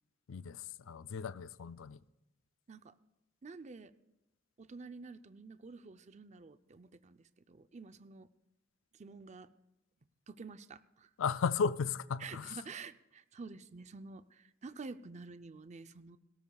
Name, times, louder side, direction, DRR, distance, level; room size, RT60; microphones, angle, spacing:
voice 1, 0.3-2.0 11.2-12.6, left 6 dB, 85° left, 0.4 m, -35 dB
voice 2, 3.4-3.9 4.6-8.3 8.9-9.5 10.3-11.1 12.2-16.2, right 4 dB, 35° right, 0.5 m, -49 dB
18.0 x 17.5 x 2.3 m
head